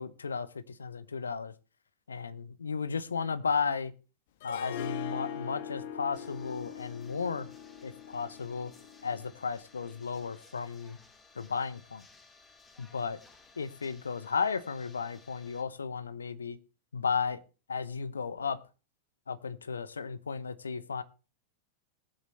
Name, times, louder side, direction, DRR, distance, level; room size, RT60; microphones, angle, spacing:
voice 1, 0.0-1.5 2.1-2.3 2.6-3.9 4.4-7.5 7.8-8.7 9.0-11.0 11.4-12.1 12.8-13.2 13.6-16.6 16.9-17.4 17.7-18.6 19.3-21.0, left 5 dB, 75° left, 16 dB, 0.9 m, -34 dB
Harp, 4.4-9.5, left 8 dB, 55° left, 1.2 m, -41 dB
sound 1, 6.1-15.6, left 3 dB, 15° left, 2.4 m, -59 dB
19.5 x 7.8 x 3.2 m, 0.32 s
figure-of-eight pair, 90°, 0 cm